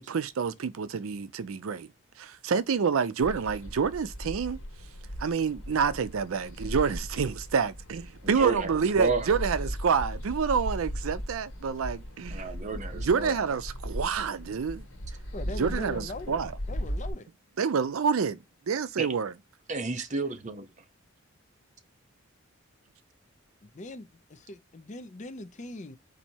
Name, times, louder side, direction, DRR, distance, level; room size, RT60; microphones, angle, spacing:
voice 1, 0.0-1.9 2.2-4.6 5.2-12.5 12.9-14.8 15.6-16.5 17.6-18.4 18.7-19.3, right 6 dB, 75° right, 0.5 m, -28 dB
sound 1, 3.2-17.1, equal, 85° left, 1.4 m, -37 dB
voice 2, 8.2-9.4 12.3-13.4 19.0-19.1 19.7-20.7, right 3 dB, 35° right, 0.7 m, -32 dB
voice 3, 15.3-17.3 23.6-26.0, left 2 dB, 35° left, 0.5 m, -41 dB
4.2 x 2.7 x 4.3 m
head